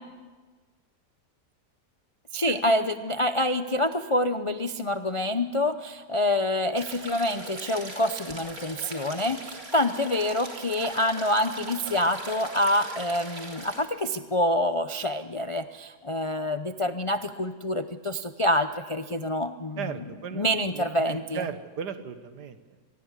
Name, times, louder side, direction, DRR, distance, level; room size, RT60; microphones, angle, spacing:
voice 1, 2.3-21.5, left 1 dB, 45° left, 9 dB, 0.4 m, -27 dB
sound 1, 6.8-13.8, right 2 dB, 55° right, 4.1 m, -40 dB
voice 2, 19.8-20.5 20.7-22.6, right 7 dB, 75° right, 10 dB, 1.9 m, -36 dB
26.5 x 20.0 x 8.2 m, 1.4 s
omnidirectional pair, 1.8 m